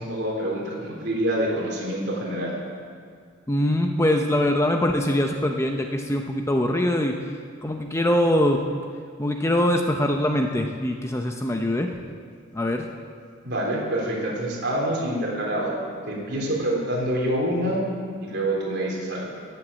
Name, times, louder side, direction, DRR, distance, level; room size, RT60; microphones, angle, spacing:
voice 1, 0.0-2.5 13.4-15.7 16.1-17.9 18.2-19.4, right 1 dB, 55° right, -3 dB, 3.6 m, -26 dB
voice 2, 3.5-7.2 7.6-8.6 9.2-11.9 12.5-12.9, left 1 dB, 15° left, 4 dB, 0.6 m, -23 dB
17.0 x 7.9 x 7.4 m, 2.1 s
head